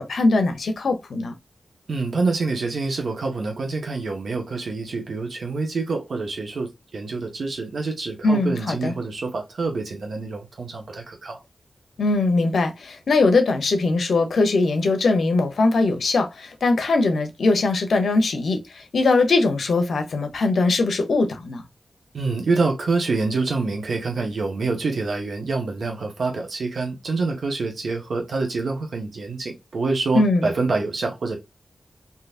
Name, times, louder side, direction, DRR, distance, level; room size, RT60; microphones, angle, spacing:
voice 1, 0.0-1.3 8.2-8.9 12.0-18.6 18.9-21.6 30.1-30.5, left 3 dB, 80° left, 0.8 m, -21 dB
voice 2, 1.9-11.4 22.1-31.4, right 3 dB, 75° right, 1.1 m, -26 dB
3.8 x 2.8 x 2.4 m
cardioid pair, 70°, 0 cm